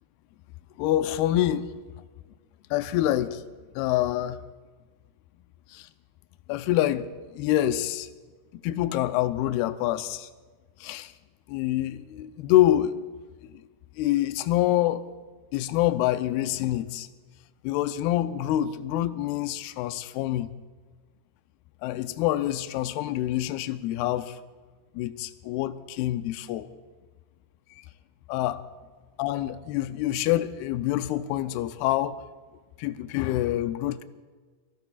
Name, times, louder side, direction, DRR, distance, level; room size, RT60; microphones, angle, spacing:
voice 1, 0.8-1.7 2.7-3.4 3.8-4.4 5.7-5.9 6.5-8.1 8.5-10.3 10.8-11.1 11.5-13.0 13.4-13.6 14.0-15.1 15.5-17.1 17.6-20.5 21.8-24.4 24.9-26.7 27.8-27.9 28.3-28.6 29.2-32.2 32.8-34.0, left 13 dB, 80° left, 2.4 m, -26 dB
28.5 x 18.5 x 2.4 m
omnidirectional pair, 4.9 m